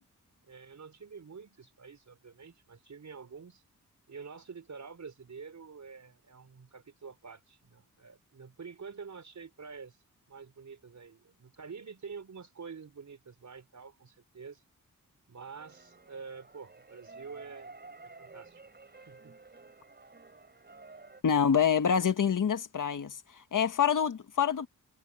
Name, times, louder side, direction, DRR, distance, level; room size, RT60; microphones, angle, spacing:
voice 1, 0.4-3.6 4.1-10.0 10.3-14.6 15.3-17.7 18.0-18.6 19.1-19.4, right 5 dB, 55° right, 5.5 m, -47 dB
sound 1, 15.6-21.2, right 3 dB, 30° right, 3.3 m, -52 dB
voice 2, 21.2-23.1 23.5-24.7, left 7 dB, 65° left, 1.7 m, -26 dB
cardioid pair, 80°, 33 cm